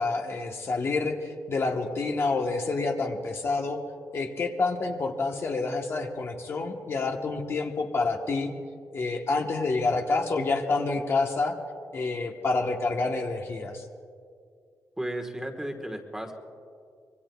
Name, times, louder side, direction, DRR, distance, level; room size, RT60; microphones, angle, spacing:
voice 1, 0.0-3.8 4.1-8.5 8.9-11.5 11.9-13.8, left 3 dB, 45° left, 3 dB, 1.1 m, -28 dB
voice 2, 15.0-16.3, right 1 dB, 10° right, 3 dB, 1.4 m, -34 dB
25.5 x 23.0 x 2.3 m, 2.2 s
wide cardioid pair, 155°, 6 cm